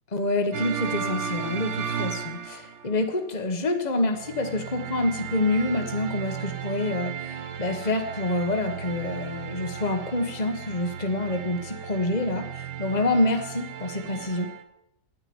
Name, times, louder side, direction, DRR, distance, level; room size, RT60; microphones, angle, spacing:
voice 1, 0.1-14.5, left 2 dB, 25° left, 5 dB, 1.6 m, -27 dB
sound 1, 0.5-3.0 4.1-14.6, right 8 dB, 85° right, 1.8 m, -35 dB
10.5 x 9.9 x 9.9 m, 0.81 s
omnidirectional pair, 1.8 m